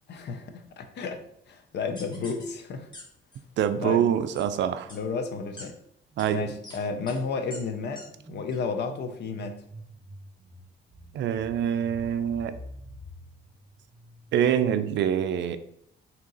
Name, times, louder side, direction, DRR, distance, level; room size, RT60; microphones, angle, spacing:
voice 1, 0.1-2.9 3.8-4.1 4.9-5.8 6.3-9.6, left 4 dB, 60° left, 7 dB, 0.6 m, -32 dB
sound 1, 1.9-2.4 2.9-3.0 3.3-3.7 4.3-4.5 4.9-5.0 5.6-5.7 6.2-6.3 6.6-6.8 7.1-7.2 7.5-7.6 7.9-8.0 8.5-8.6, left 1 dB, 20° left, 1.3 m, -44 dB
voice 2, 3.6-4.9 6.2-6.5 11.1-12.6 14.3-15.6, right 9 dB, 65° right, 11 dB, 0.4 m, -25 dB
sound 2, 5.8-14.5, equal, 20° right, 1.1 m, -48 dB
3.7 x 2.9 x 3.9 m, 0.71 s
cardioid pair, 90°, 20 cm